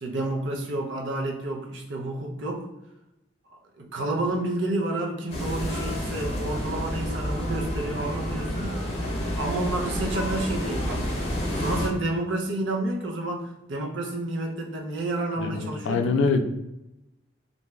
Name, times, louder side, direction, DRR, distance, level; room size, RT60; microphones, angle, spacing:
voice 1, 0.0-2.7 3.5-8.7 9.4-11.1 11.5-16.0, right 2 dB, 80° right, 1 dB, 0.5 m, -30 dB
sound 1, 5.3-11.9, equal, 35° left, 0.6 m, -29 dB
voice 2, 15.4-16.4, left 4 dB, 85° left, 7 dB, 0.3 m, -24 dB
2.6 x 2.3 x 3.1 m, 0.91 s
head